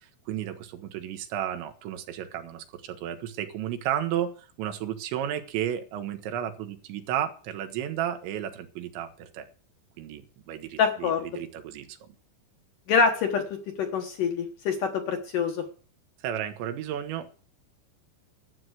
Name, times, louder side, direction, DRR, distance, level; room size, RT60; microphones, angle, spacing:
voice 1, 0.0-9.5 10.0-12.1 16.2-17.3, right 10 dB, 85° right, 7 dB, 3.6 m, -33 dB
voice 2, 10.8-11.2 12.9-15.6, left 6 dB, 65° left, 4 dB, 2.2 m, -25 dB
12.0 x 7.7 x 7.9 m, 0.41 s
omnidirectional pair, 5.1 m